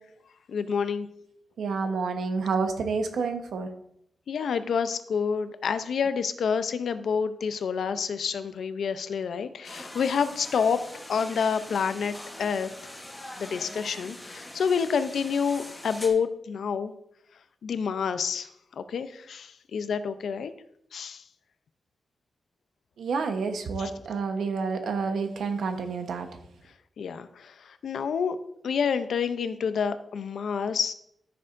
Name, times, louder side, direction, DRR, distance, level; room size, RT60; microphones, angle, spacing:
voice 1, 0.5-1.1 4.3-10.8 11.1-12.7 13.4-16.9 17.6-18.5 18.8-20.5 20.9-21.2 23.8-23.9 27.0-28.4 28.6-30.9, left 6 dB, 70° left, 11 dB, 0.5 m, -28 dB
voice 2, 1.6-3.7 23.0-26.3, right 4 dB, 85° right, 6 dB, 1.0 m, -29 dB
sound 1, 9.6-16.1, left 1 dB, 10° left, 1.2 m, -43 dB
13.5 x 6.7 x 2.6 m, 0.76 s
wide cardioid pair, 170°, 0 cm